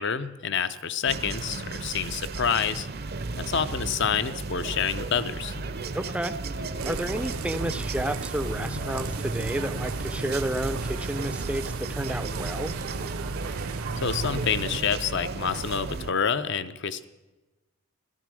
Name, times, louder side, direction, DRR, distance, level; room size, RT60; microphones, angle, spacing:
voice 1, 0.0-2.9 3.4-5.5 14.0-17.0, left 7 dB, 55° left, 13 dB, 0.6 m, -28 dB
sound 1, 1.1-16.1, right 3 dB, 45° right, 0.6 m, -34 dB
Piano, 5.5-12.3, left 3 dB, 75° left, 7.0 m, -46 dB
voice 2, 5.9-6.4 6.8-12.8, right 1 dB, 5° right, 12 dB, 0.4 m, -31 dB
sound 2, 6.8-14.8, right 4 dB, 90° right, 0.8 m, -35 dB
14.0 x 13.0 x 6.2 m, 1.2 s
head